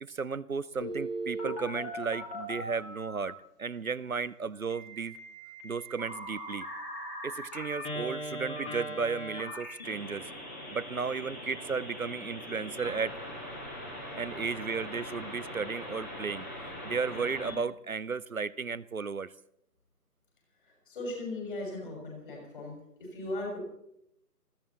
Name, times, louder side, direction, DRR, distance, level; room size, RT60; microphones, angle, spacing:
voice 1, 0.0-5.1 5.6-6.7 7.2-10.3 10.7-13.2 14.2-16.5 16.8-19.3, right 5 dB, 60° right, 18 dB, 0.7 m, -34 dB
Telephone, 0.8-3.3 4.7-17.5, equal, 10° left, 1.6 m, -40 dB
voice 2, 20.9-22.7 23.0-23.6, left 2 dB, 30° left, 0 dB, 6.2 m, -37 dB
20.0 x 16.0 x 4.2 m, 0.78 s
figure-of-eight pair, 150°, 48 cm